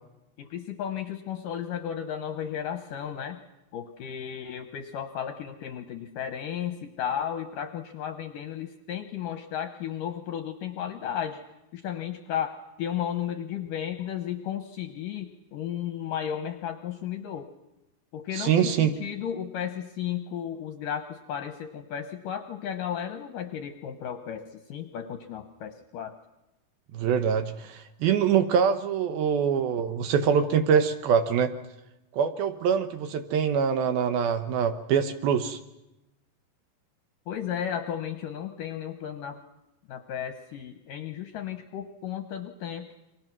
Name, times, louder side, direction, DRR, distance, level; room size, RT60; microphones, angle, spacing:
voice 1, 0.4-3.4 3.7-11.4 11.7-17.5 18.1-26.2 37.3-39.4 39.9-42.9, left 9 dB, 70° left, 8 dB, 2.2 m, -34 dB
voice 2, 18.3-18.9 26.9-31.5 32.1-35.6, right 7 dB, 70° right, 9 dB, 2.6 m, -24 dB
28.5 x 24.0 x 6.1 m, 0.94 s
omnidirectional pair, 4.9 m